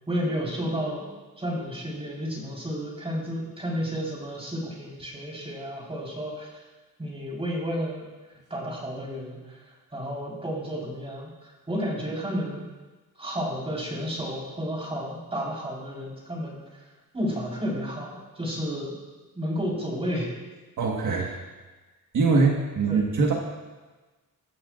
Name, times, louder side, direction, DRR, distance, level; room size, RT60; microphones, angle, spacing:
voice 1, 0.1-1.1 1.4-6.5 7.0-8.0 8.5-9.6 9.9-12.6 13.2-16.6 17.1-18.9 19.3-20.3 21.2-21.3 22.9-23.1, equal, 15° right, -4 dB, 4.4 m, -31 dB
voice 2, 20.8-21.3 22.1-23.3, right 4 dB, 65° right, -1 dB, 1.6 m, -22 dB
22.5 x 14.0 x 2.6 m, 1.2 s
wide cardioid pair, 165°, 33 cm